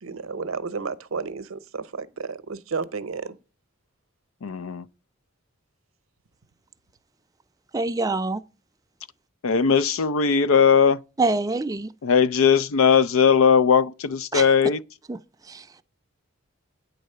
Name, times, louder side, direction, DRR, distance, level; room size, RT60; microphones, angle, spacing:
voice 1, 0.0-3.4, right 4 dB, 85° right, 0.7 m, -32 dB
voice 2, 4.4-4.8 9.4-11.0 12.0-14.8, left 6 dB, 85° left, 0.5 m, -19 dB
voice 3, 7.7-8.4 11.2-11.9 14.3-14.5 15.1-15.2 15.5-15.7, right 3 dB, 20° right, 0.4 m, -25 dB
9.2 x 3.9 x 6.6 m
head